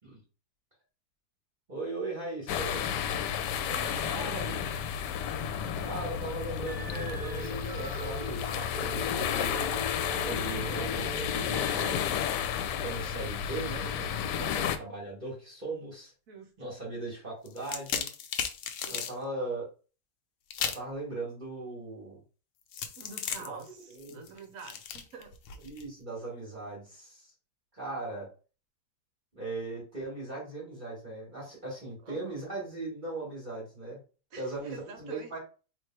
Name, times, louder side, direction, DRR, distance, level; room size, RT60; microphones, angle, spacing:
voice 1, 1.7-2.8 4.0-4.5 5.8-9.9 10.1-12.1 12.8-16.1 16.6-18.1 18.9-19.7 20.6-22.2 23.4-23.6 23.9-24.2 25.6-27.3 27.7-28.3 29.3-34.0 34.3-35.4, right 2 dB, 30° right, 1.6 m, -38 dB
sound 1, 2.5-14.8, left 8 dB, 80° left, 1.2 m, -32 dB
voice 2, 3.6-4.3 14.4-14.6 16.3-16.7 18.8-19.1 23.0-25.4 32.0-32.5 34.3-35.4, right 5 dB, 60° right, 1.1 m, -47 dB
sound 2, 6.6-12.0, left 1 dB, 25° left, 1.6 m, -40 dB
sound 3, 17.5-19.1 20.5-20.9 22.7-25.8, left 7 dB, 65° left, 0.8 m, -36 dB
3.2 x 2.9 x 4.4 m
omnidirectional pair, 1.8 m